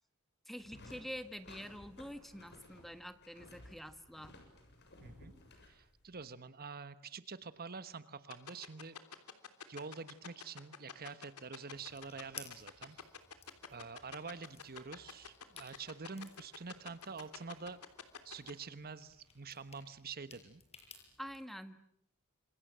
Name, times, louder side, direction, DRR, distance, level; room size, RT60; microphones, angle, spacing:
voice 1, 0.5-4.4 21.2-21.8, equal, ahead, 10 dB, 1.6 m, -47 dB
sound 1, 0.6-6.3, left 1 dB, 50° left, 7.2 m, -57 dB
voice 2, 5.0-5.3 5.7-9.0 9.7-13.1 13.7-17.8 18.2-20.6, right 4 dB, 45° right, 13 dB, 1.2 m, -47 dB
sound 2, 8.3-18.5, left 7 dB, 80° left, 3.2 m, -47 dB
sound 3, 11.7-21.4, left 6 dB, 30° left, 6.3 m, -58 dB
28.5 x 27.5 x 7.5 m, 0.70 s
head